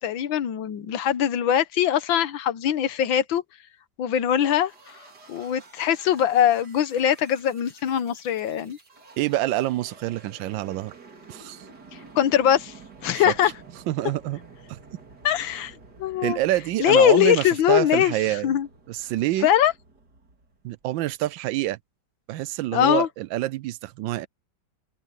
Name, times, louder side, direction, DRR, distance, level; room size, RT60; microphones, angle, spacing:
voice 1, 0.0-3.4 4.0-5.0 5.3-8.8 12.2-12.7 13.0-13.5 15.2-16.4 16.8-18.1 18.4-18.7 19.4-19.7 22.7-23.1, left 10 dB, 75° left, 1.7 m, -22 dB
sound 1, 4.5-21.1, right 4 dB, 50° right, 3.5 m, -50 dB
voice 2, 9.2-10.9 11.3-11.6 13.1-13.3 13.9-14.4 14.7-14.8 16.2-18.5 18.9-19.5 20.6-21.8 22.3-24.3, right 15 dB, 75° right, 1.3 m, -26 dB
open air
omnidirectional pair, 2.2 m